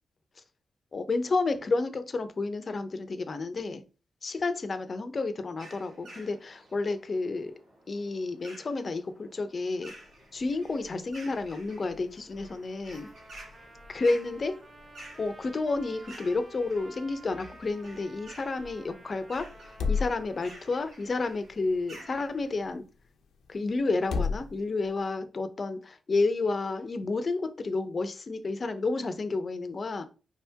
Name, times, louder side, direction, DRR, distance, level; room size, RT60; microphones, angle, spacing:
voice 1, 0.9-3.8 4.2-7.5 7.9-9.9 10.3-13.1 13.9-14.5 15.2-22.8 23.5-30.0, left 3 dB, 45° left, 10 dB, 0.7 m, -30 dB
sound 1, 5.6-22.7, right 1 dB, 80° right, 1.7 m, -52 dB
sound 2, 9.8-25.1, left 5 dB, 85° left, 0.7 m, -40 dB
Trumpet, 12.4-20.8, right 2 dB, 35° right, 0.8 m, -52 dB
4.9 x 3.5 x 2.9 m, 0.33 s
cardioid pair, 65°, 0 cm